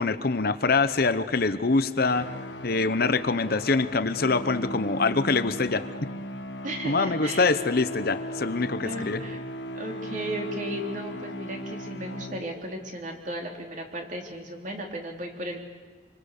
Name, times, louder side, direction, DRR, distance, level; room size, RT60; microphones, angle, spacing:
voice 1, 0.0-2.3 2.6-5.8 6.8-9.2, left 3 dB, 55° left, 11 dB, 0.9 m, -24 dB
sound 1, 2.1-12.9, equal, 70° left, 1.4 m, -37 dB
voice 2, 6.6-7.5 8.8-9.4 9.7-15.6, right 1 dB, 45° right, 1 dB, 3.6 m, -35 dB
26.5 x 24.5 x 6.7 m, 1.5 s
head